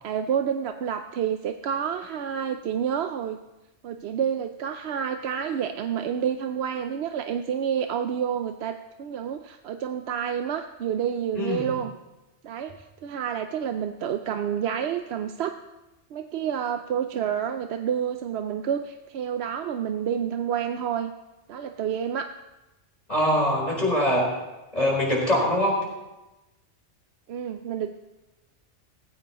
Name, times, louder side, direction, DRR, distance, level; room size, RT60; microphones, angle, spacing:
voice 1, 0.0-3.4 3.8-11.9 12.4-15.5 16.1-21.1 21.5-22.3 27.3-28.0, right 8 dB, 70° right, 7 dB, 0.8 m, -29 dB
voice 2, 11.4-11.7 23.1-24.2 24.7-25.8, left 1 dB, 35° left, -3 dB, 4.5 m, -23 dB
18.0 x 15.0 x 3.0 m, 1.0 s
omnidirectional pair, 1.2 m